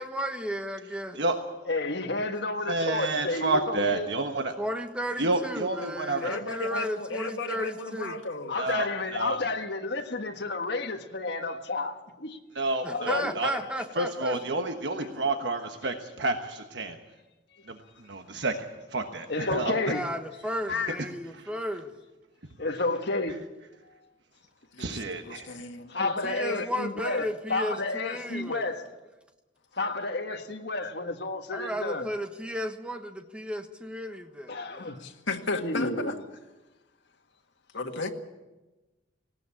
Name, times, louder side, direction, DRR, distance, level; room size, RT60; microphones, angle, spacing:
voice 1, 0.0-1.2 4.6-8.2 12.8-14.4 19.9-21.9 26.0-28.8 31.5-34.9, equal, 5° right, 1.3 m, -34 dB
voice 2, 1.7-4.1 8.5-12.4 12.9-13.3 19.3-20.0 22.6-23.4 25.9-27.2 27.5-28.8 29.8-32.0 34.5-35.0 35.6-36.1, left 2 dB, 60° left, 1.6 m, -30 dB
voice 3, 2.6-4.5 5.2-6.3 8.6-9.4 12.5-13.5 14.0-17.0 17.7-17.8 18.1-18.6 18.9-19.9 21.4-21.5 23.3-23.4 24.8-25.6, right 2 dB, 65° right, 1.3 m, -29 dB
voice 4, 6.2-8.6 13.3-13.4 20.7-21.0 24.7-25.9 26.2-26.3 35.0-36.2 37.7-38.1, left 3 dB, 85° left, 1.9 m, -34 dB
19.0 x 17.5 x 8.6 m
head